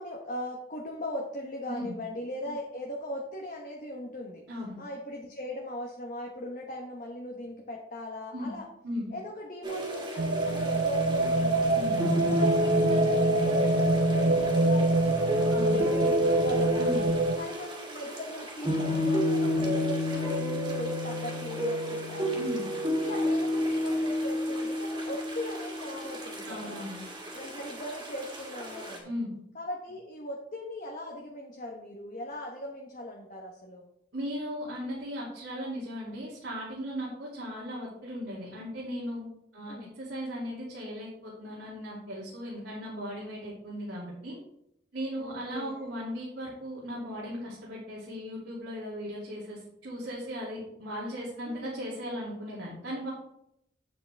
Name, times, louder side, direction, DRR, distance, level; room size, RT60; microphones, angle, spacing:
voice 1, 0.0-4.4 4.8-8.7 9.1-11.8 12.1-17.0 17.4-22.5 23.0-26.9 27.3-29.1 29.5-33.9 39.7-39.9 45.2-45.9 51.4-51.8, left 1 dB, 45° left, 0 dB, 1.1 m, -39 dB
voice 2, 4.5-4.8 8.3-8.6 8.8-9.1 11.7-11.9 15.5-15.8 16.8-17.1 22.4-22.6 26.4-27.0 29.0-29.3 34.1-39.2 39.5-44.4 44.9-53.1, equal, 85° right, -7 dB, 2.6 m, -37 dB
sound 1, 9.6-29.0, left 1 dB, 25° right, 2.2 m, -30 dB
sound 2, 10.2-17.4, right 2 dB, 65° right, 0.6 m, -26 dB
8.3 x 7.9 x 3.4 m, 0.77 s
head